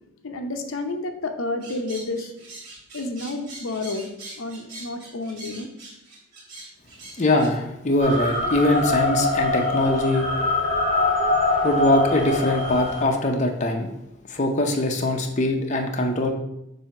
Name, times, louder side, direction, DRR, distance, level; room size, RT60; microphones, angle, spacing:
voice 1, 0.2-2.3 2.9-4.1 4.4-5.7, left 2 dB, 80° left, 5 dB, 0.7 m, -30 dB
sound 1, 1.6-7.5, right 2 dB, 55° right, 2.3 m, -42 dB
voice 2, 7.2-10.3 11.6-13.9 14.3-16.3, left 1 dB, 35° left, 3 dB, 0.7 m, -22 dB
sound 2, 8.0-13.0, left 2 dB, 30° right, 1.3 m, -23 dB
7.3 x 2.8 x 5.8 m, 0.86 s
head